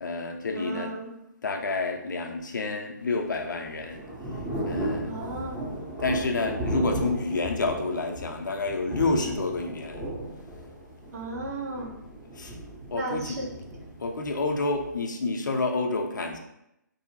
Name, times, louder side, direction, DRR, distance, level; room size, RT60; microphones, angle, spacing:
voice 1, 0.0-0.9 1.4-4.0 4.7-5.2 6.0-10.0 12.4-12.5 12.9-13.4 14.0-16.4, left 3 dB, 75° left, 3 dB, 0.4 m, -29 dB
voice 2, 0.5-1.1 5.1-5.7 11.1-12.0 12.9-13.5, right 2 dB, 55° right, 0 dB, 0.6 m, -34 dB
Thunder / Rain, 3.0-15.0, right 1 dB, 5° right, 0.4 m, -35 dB
2.6 x 2.0 x 2.9 m, 0.83 s
figure-of-eight pair, 145°, 10 cm